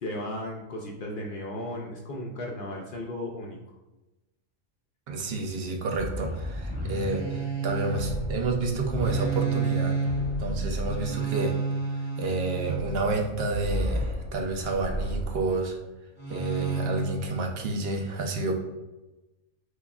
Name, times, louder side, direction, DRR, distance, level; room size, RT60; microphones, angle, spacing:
voice 1, 0.0-3.6, left 1 dB, 65° left, -1 dB, 0.5 m, -35 dB
voice 2, 5.1-10.0 10.4-11.5 12.2-15.8 16.3-18.6, right 3 dB, 60° right, 2 dB, 0.7 m, -29 dB
sound 1, 5.9-15.5 16.2-17.3, right 2 dB, 15° right, 0.8 m, -30 dB
6.3 x 2.3 x 2.3 m, 1.0 s
omnidirectional pair, 1.4 m